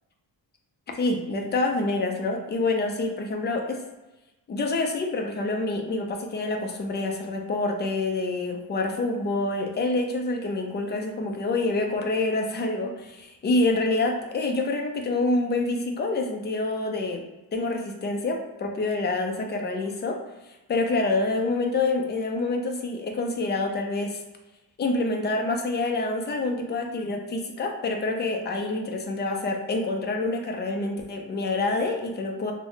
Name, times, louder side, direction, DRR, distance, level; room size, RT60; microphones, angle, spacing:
voice 1, 1.0-3.8 4.5-17.2 17.5-20.2 20.7-24.2 24.8-32.5, left 2 dB, 25° left, 3 dB, 0.3 m, -27 dB
3.1 x 2.1 x 3.8 m, 1.0 s
wide cardioid pair, 155°, 45 cm